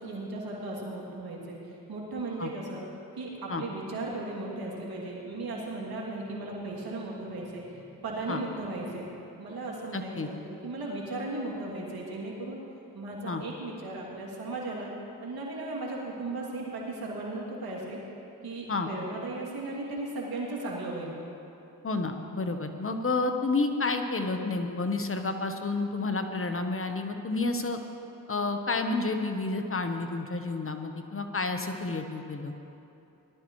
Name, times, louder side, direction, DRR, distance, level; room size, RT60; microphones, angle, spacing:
voice 1, 0.0-1.6 1.9-2.8 3.2-9.1 9.4-12.6 12.9-14.9 15.2-18.0 18.4-21.1, right 2 dB, 75° right, -3 dB, 2.8 m, -36 dB
voice 2, 9.9-10.3 13.3-13.4 18.7-18.9 21.8-27.8 28.3-32.5, left 3 dB, 35° left, 6 dB, 1.1 m, -30 dB
19.0 x 12.0 x 3.2 m, 2.9 s
supercardioid pair, 45°, 37 cm